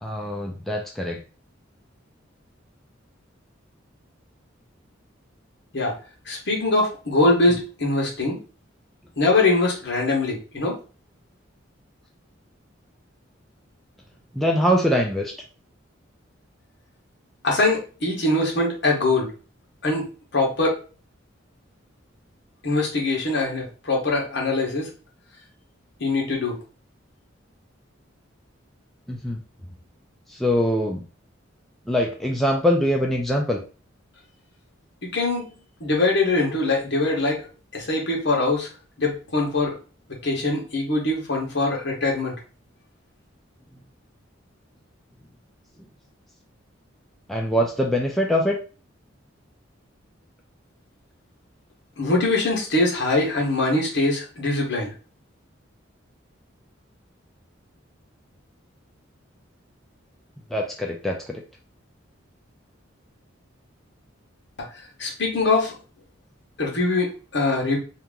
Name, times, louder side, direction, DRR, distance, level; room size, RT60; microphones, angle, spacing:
voice 1, 0.0-1.2 14.3-15.3 29.1-29.4 30.3-31.0 31.9-33.6 47.3-48.6 60.5-61.4, equal, ahead, -1 dB, 0.4 m, -23 dB
voice 2, 6.3-8.4 9.2-10.8 17.4-19.3 19.8-20.0 20.3-20.8 22.6-24.9 26.0-26.5 35.1-35.5 35.8-37.4 37.7-38.7 39.0-39.7 40.2-42.3 52.0-54.9 65.0-65.7 66.6-67.8, left 2 dB, 60° left, -1 dB, 1.2 m, -22 dB
2.9 x 2.5 x 3.6 m, 0.36 s
head